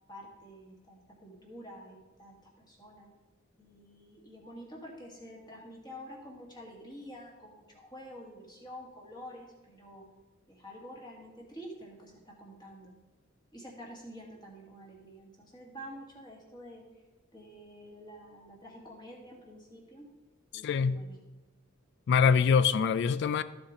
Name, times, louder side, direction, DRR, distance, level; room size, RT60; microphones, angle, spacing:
voice 1, 0.1-3.1 3.6-10.1 10.5-12.9 13.5-16.8 17.3-20.1 20.5-21.2, equal, 20° left, 1.8 m, -48 dB
voice 2, 20.6-21.0 22.1-23.4, left 6 dB, 55° left, 0.3 m, -24 dB
12.5 x 7.1 x 3.8 m
head